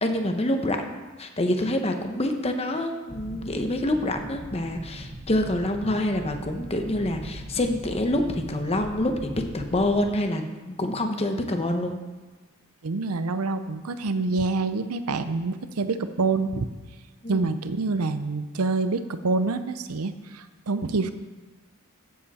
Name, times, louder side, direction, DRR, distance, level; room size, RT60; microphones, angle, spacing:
voice 1, 0.0-9.3 9.5-12.0 17.2-17.6, left 1 dB, 30° left, 5 dB, 1.0 m, -26 dB
sound 1, 3.1-10.0, right 1 dB, 25° right, 0.9 m, -40 dB
voice 2, 12.8-16.7 17.3-21.1, right 3 dB, 80° right, 11 dB, 0.7 m, -26 dB
14.5 x 7.7 x 4.2 m, 1.3 s
head